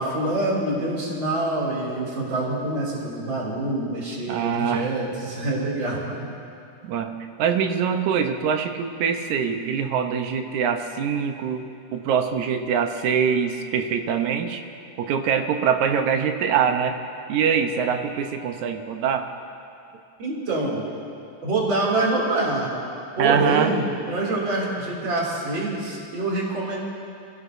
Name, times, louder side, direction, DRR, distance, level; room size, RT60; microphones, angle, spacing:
voice 1, 0.0-6.1 20.2-20.8 21.4-22.7 23.2-26.8, right 2 dB, 40° right, -4 dB, 3.4 m, -25 dB
voice 2, 4.3-4.9 6.8-7.1 7.4-11.6 11.9-14.6 15.0-17.0 17.3-19.3 23.2-23.8, right 7 dB, 80° right, 6 dB, 2.3 m, -23 dB
27.5 x 16.5 x 2.7 m, 2.6 s
omnidirectional pair, 3.3 m